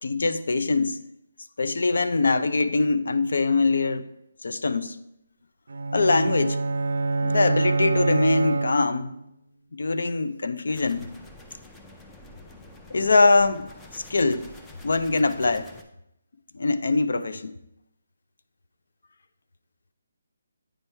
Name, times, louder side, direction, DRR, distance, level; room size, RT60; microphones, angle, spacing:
voice 1, 0.0-1.0 1.6-4.1 4.4-5.0 5.9-6.6 7.2-9.2 9.7-11.1 12.9-13.7 13.9-14.5 14.8-15.7 16.5-17.5, left 3 dB, 70° left, 0.5 m, -23 dB
sound 1, 5.7-9.2, right 3 dB, 85° right, 0.4 m, -26 dB
sound 2, 10.7-15.8, left 2 dB, 5° left, 0.3 m, -47 dB
8.7 x 3.3 x 4.5 m
hypercardioid pair, 175°, 0 cm